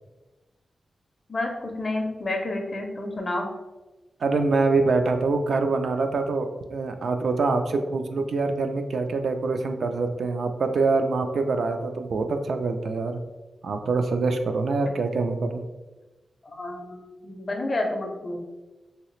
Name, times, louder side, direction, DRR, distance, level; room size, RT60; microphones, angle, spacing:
voice 1, 1.3-3.5 16.4-18.4, left 2 dB, 35° left, 3 dB, 0.4 m, -30 dB
voice 2, 4.2-13.2 13.6-15.6, right 3 dB, 70° right, 6 dB, 0.3 m, -25 dB
3.1 x 2.8 x 3.0 m, 1.1 s
wide cardioid pair, 110°, 0 cm